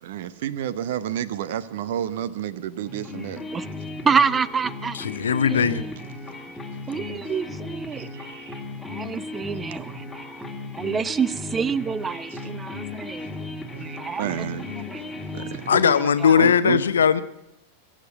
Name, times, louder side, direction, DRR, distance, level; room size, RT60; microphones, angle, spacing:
voice 1, 0.0-3.4 8.0-8.6 12.3-12.4 13.1-13.3 13.8-15.7 16.4-16.9, right 10 dB, 55° right, 0.8 m, -31 dB
sound 1, 2.9-16.0, left 3 dB, 5° left, 2.0 m, -36 dB
voice 2, 4.0-5.0 5.5-5.9 6.9-8.1 8.8-10.4 10.8-13.4 13.8-15.1 15.4-15.5 15.7-16.4, right 6 dB, 20° right, 0.5 m, -28 dB
voice 3, 4.9-5.8 15.7-17.2, left 7 dB, 70° left, 0.8 m, -19 dB
22.5 x 7.5 x 8.5 m
figure-of-eight pair, 90°, 0 cm